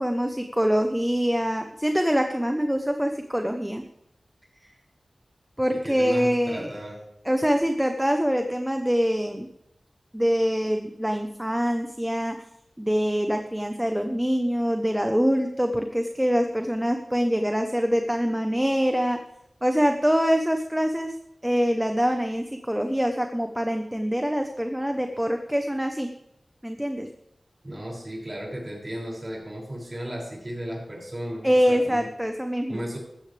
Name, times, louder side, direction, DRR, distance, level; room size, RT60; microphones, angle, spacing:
voice 1, 0.0-3.8 5.6-6.7 7.2-9.5 10.1-12.3 12.8-19.2 19.6-21.1 21.4-26.1 26.6-27.1 31.4-32.8, equal, 5° right, 5 dB, 1.0 m, -24 dB
voice 2, 5.7-7.0 27.6-32.1 32.7-33.0, equal, 25° right, -3 dB, 6.4 m, -35 dB
15.5 x 13.5 x 3.4 m, 0.82 s
wide cardioid pair, 85°, 0 cm